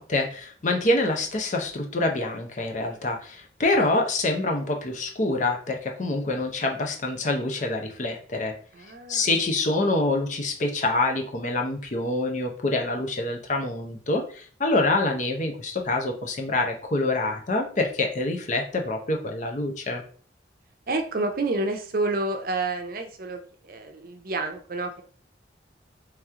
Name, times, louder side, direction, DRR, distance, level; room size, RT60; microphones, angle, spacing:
voice 1, 0.0-8.5 9.1-20.0, left 2 dB, 45° left, 3 dB, 0.7 m, -26 dB
voice 2, 8.7-9.3 20.9-25.0, right 2 dB, 50° right, 5 dB, 0.6 m, -29 dB
3.4 x 3.0 x 3.6 m, 0.43 s
head